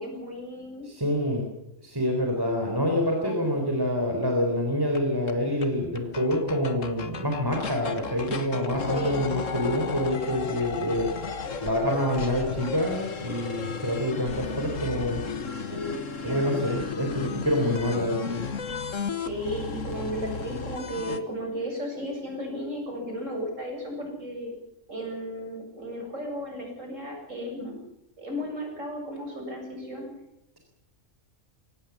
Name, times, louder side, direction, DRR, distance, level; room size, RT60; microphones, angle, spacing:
voice 1, 0.0-0.9 3.2-3.5 8.8-9.3 15.5-16.8 19.2-24.5 24.9-27.8 28.2-30.1, equal, 75° right, 1 dB, 7.9 m, -35 dB
voice 2, 0.9-1.5 1.8-11.1 11.6-15.2 16.2-18.4, left 1 dB, 15° right, 2 dB, 4.1 m, -27 dB
sound 1, 4.9-5.0 5.3-5.4 5.6-5.7 6.0-21.2, left 5 dB, 80° left, 1.8 m, -34 dB
23.5 x 18.0 x 7.3 m, 0.83 s
omnidirectional pair, 1.3 m